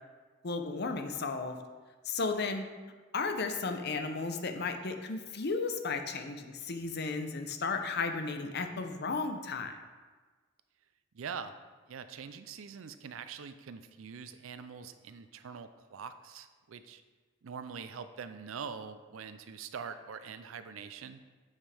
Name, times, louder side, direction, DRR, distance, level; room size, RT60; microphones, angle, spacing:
voice 1, 0.4-1.6 2.0-2.7 3.1-9.8, left 4 dB, 55° left, 6 dB, 0.7 m, -34 dB
voice 2, 11.1-11.5 11.9-17.0 17.4-21.2, right 6 dB, 80° right, 11 dB, 0.4 m, -44 dB
7.2 x 7.2 x 3.4 m, 1.4 s
head